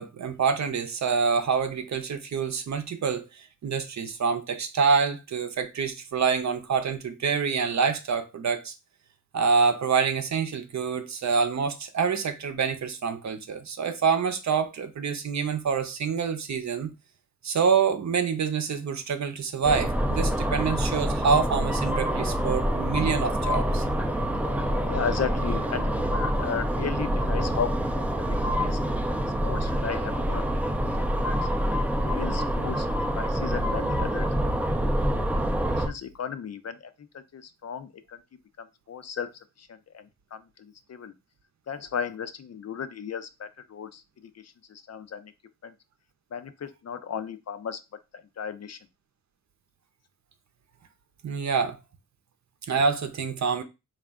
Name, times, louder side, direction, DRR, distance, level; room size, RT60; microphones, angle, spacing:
voice 1, 0.0-8.7 9.3-16.9 17.4-23.8 51.2-51.8 52.7-53.6, right 5 dB, 60° right, 0.7 m, -26 dB
sound 1, 19.6-35.9, equal, 5° right, 0.4 m, -26 dB
voice 2, 24.8-28.8 29.1-29.2 29.4-30.5 31.2-31.5 32.0-32.9 33.2-35.3 35.7-38.2 38.6-39.3 39.6-41.1 41.7-44.0 44.3-45.3 45.6-45.7 46.3-47.8 48.1-48.8, left 7 dB, 55° left, 0.5 m, -35 dB
4.1 x 2.4 x 3.5 m
wide cardioid pair, 85°, 32 cm